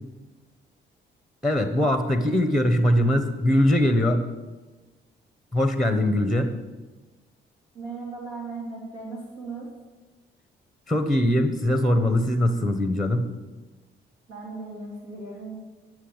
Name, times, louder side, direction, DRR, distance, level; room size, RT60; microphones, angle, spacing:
voice 1, 1.4-4.3 5.5-6.6 10.9-13.3, left 1 dB, ahead, 7 dB, 1.0 m, -22 dB
voice 2, 7.7-9.7 14.3-15.6, right 3 dB, 85° right, -3 dB, 3.4 m, -37 dB
9.5 x 6.3 x 8.7 m, 1.2 s
cardioid pair, 90°, 20 cm